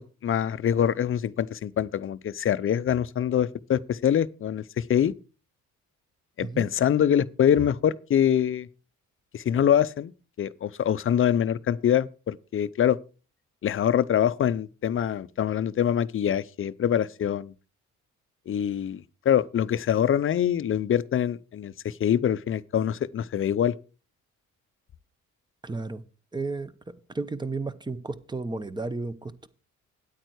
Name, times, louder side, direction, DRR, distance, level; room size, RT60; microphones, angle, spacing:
voice 1, 0.2-5.1 6.4-8.7 9.3-10.1 10.4-13.0 13.6-17.5 18.5-23.7, left 9 dB, 45° left, 0.6 m, -24 dB
voice 2, 25.6-26.0 26.3-26.7 27.1-29.5, right 3 dB, 15° right, 1.0 m, -33 dB
9.1 x 9.0 x 4.7 m
cardioid pair, 90°, 30 cm